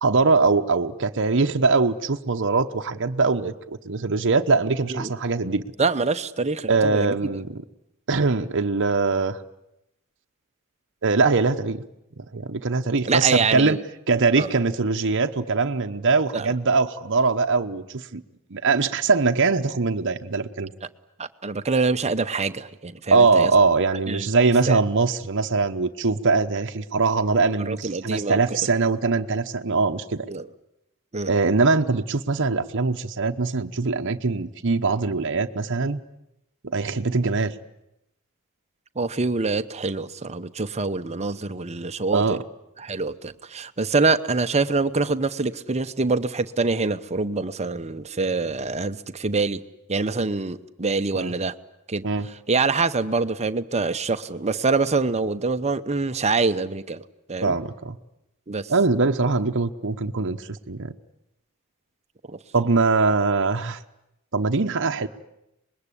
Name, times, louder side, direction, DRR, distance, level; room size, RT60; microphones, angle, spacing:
voice 1, 0.0-3.5 3.8-5.6 6.7-7.6 8.1-9.4 11.0-11.8 12.2-13.8 14.1-18.2 18.5-20.7 23.1-30.3 31.3-36.0 36.6-37.5 42.1-42.4 51.1-51.3 52.0-52.3 57.4-58.0 58.7-60.9 62.5-63.8 64.3-65.1, right 4 dB, 55° right, 6 dB, 1.0 m, -22 dB
voice 2, 5.8-7.1 13.1-13.8 14.4-14.5 16.3-16.5 21.2-23.5 24.1-24.3 24.7-24.8 27.7-28.4 30.3-30.5 31.1-31.3 39.0-42.4 42.8-49.6 49.9-51.5 51.9-52.0 52.5-57.0 57.3-57.6 58.5-58.7 62.3-62.4, right 3 dB, 30° right, 9 dB, 0.9 m, -25 dB
25.5 x 21.0 x 10.0 m, 0.86 s
head